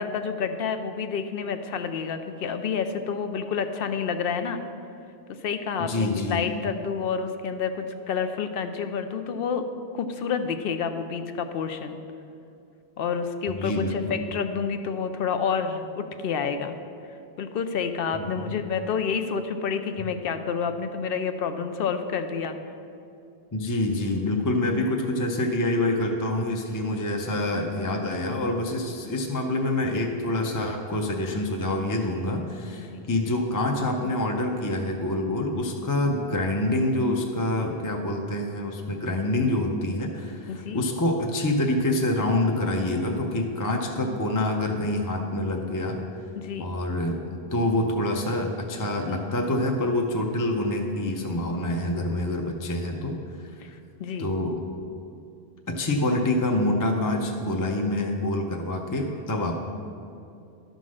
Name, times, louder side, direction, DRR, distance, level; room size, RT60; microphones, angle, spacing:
voice 1, 0.0-4.6 5.4-9.6 9.9-12.0 13.0-16.8 17.4-22.6 32.9-33.1 40.5-40.8 46.4-46.7 53.6-53.7 54.0-54.3, left 6 dB, 70° left, 8 dB, 0.8 m, -29 dB
voice 2, 5.8-6.4 13.5-14.2 18.1-18.6 23.5-46.0 46.6-47.2 47.5-53.2 54.2-54.6 55.7-59.6, left 1 dB, 25° left, 1 dB, 0.5 m, -26 dB
11.5 x 3.9 x 6.2 m, 2.6 s
omnidirectional pair, 1.0 m